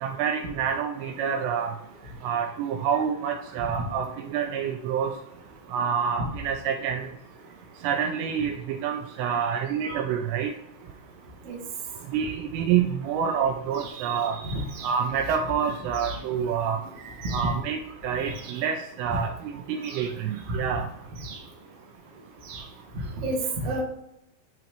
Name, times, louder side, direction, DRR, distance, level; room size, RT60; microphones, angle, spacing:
voice 1, 0.0-1.7 2.2-5.1 5.7-7.1 7.8-10.5 12.1-14.4 14.8-16.8 17.3-20.9, right 7 dB, 80° right, 3 dB, 2.6 m, -27 dB
voice 2, 14.4-14.9 16.0-16.2 17.2-17.5 19.9-20.0 20.5-20.6 21.2-21.3 22.5-22.6 23.2-23.8, right 2 dB, 65° right, -2 dB, 1.6 m, -30 dB
9.4 x 3.9 x 3.0 m, 0.83 s
omnidirectional pair, 5.2 m